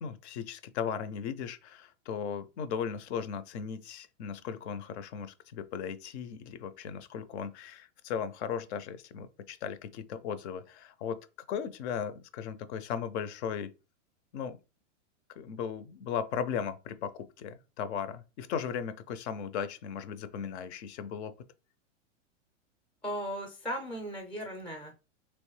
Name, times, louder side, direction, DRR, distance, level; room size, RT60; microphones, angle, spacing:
voice 1, 0.0-11.2 11.5-13.7 14.3-14.6 15.4-21.3, left 7 dB, 60° left, 0.6 m, -37 dB
voice 2, 23.0-25.0, equal, 5° left, 0.4 m, -37 dB
3.1 x 2.9 x 3.1 m
hypercardioid pair, 130°, 38 cm